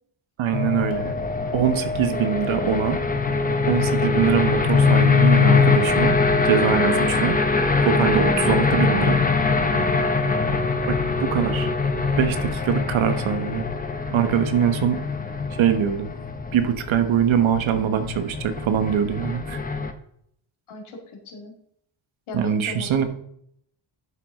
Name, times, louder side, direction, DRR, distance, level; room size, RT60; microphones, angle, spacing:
voice 1, 0.4-1.2 1.5-3.0 3.7-6.2 6.4-7.4 7.8-9.2 11.2-11.7 12.2-13.7 14.1-15.0 15.6-16.1 16.5-19.6 22.3-23.1, right 8 dB, 70° right, 9 dB, 1.2 m, -23 dB
sound 1, 0.5-19.9, left 4 dB, 20° left, 0.8 m, -22 dB
voice 2, 20.7-21.5 22.3-23.1, left 2 dB, 75° left, 2 dB, 2.2 m, -37 dB
11.0 x 6.3 x 3.6 m, 0.71 s
wide cardioid pair, 150°, 49 cm